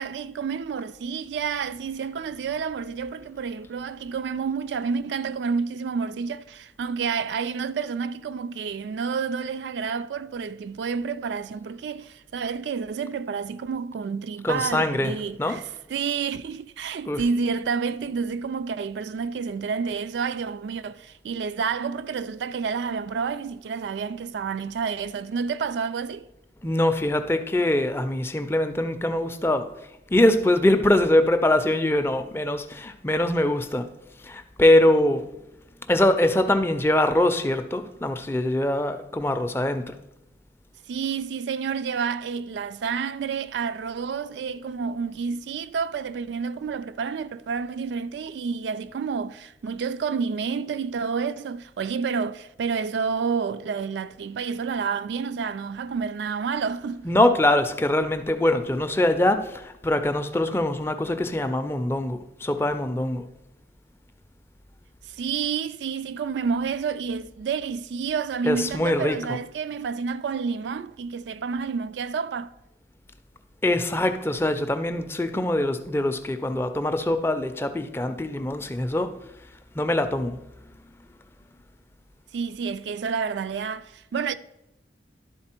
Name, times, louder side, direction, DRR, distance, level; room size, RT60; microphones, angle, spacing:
voice 1, 0.0-26.3 40.9-57.1 65.0-72.5 82.3-84.3, right 5 dB, 75° right, 0.3 m, -29 dB
voice 2, 14.4-15.1 15.4-15.6 17.1-17.2 26.6-29.7 30.1-33.9 34.2-35.3 35.9-39.9 57.0-63.3 68.4-69.4 73.6-79.1 79.7-80.4, left 1 dB, 15° left, 0.4 m, -23 dB
11.5 x 4.0 x 4.4 m
head